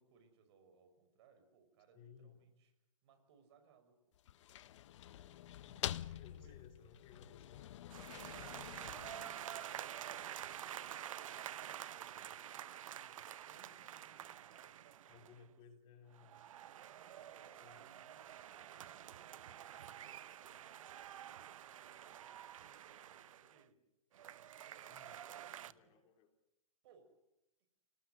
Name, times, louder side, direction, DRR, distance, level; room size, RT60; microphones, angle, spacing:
voice 1, 0.0-2.7 3.0-4.1 5.2-5.5 5.9-6.6 8.0-8.5 8.9-15.6 16.7-23.8 24.9-26.0 26.8-27.1, right 5 dB, 50° right, 8 dB, 5.4 m, -69 dB
voice 2, 1.9-2.4 5.7-7.6 15.1-16.4 17.6-17.9 24.9-25.2 25.7-26.3, left 6 dB, 30° left, 6 dB, 3.2 m, -61 dB
sound 1, 4.1-10.2, left 12 dB, 60° left, 0.9 m, -47 dB
sound 2, 7.9-15.4 16.1-23.6 24.1-25.7, right 11 dB, 70° right, 0.9 m, -49 dB
27.0 x 19.0 x 7.9 m, 0.87 s
hypercardioid pair, 140°, 18 cm